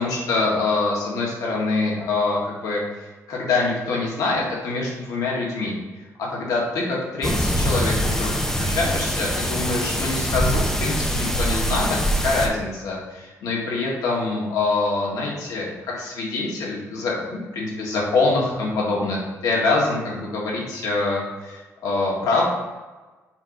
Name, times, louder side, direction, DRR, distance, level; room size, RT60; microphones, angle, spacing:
voice 1, 0.0-2.8 3.3-5.7 6.2-22.4, left 3 dB, 80° left, -3 dB, 2.0 m, -25 dB
sound 1, 7.2-12.5, equal, 10° left, 0.7 m, -23 dB
7.2 x 3.0 x 5.2 m, 1.2 s
cardioid pair, 160°, 6 cm